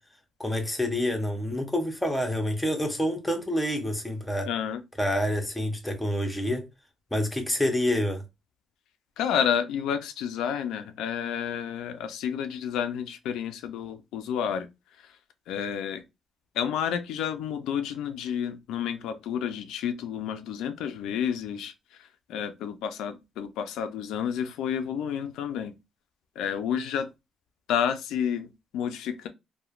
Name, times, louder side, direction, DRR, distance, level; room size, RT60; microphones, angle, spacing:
voice 1, 0.4-4.5 5.0-6.6 7.1-8.2, left 1 dB, 10° left, 0.7 m, -27 dB
voice 2, 4.5-4.8 9.2-14.7 15.0-15.2 15.5-16.0 16.5-25.7 26.4-27.1 27.7-29.3, left 8 dB, 90° left, 0.3 m, -30 dB
3.0 x 2.1 x 2.3 m
cardioid pair, 90°, 0 cm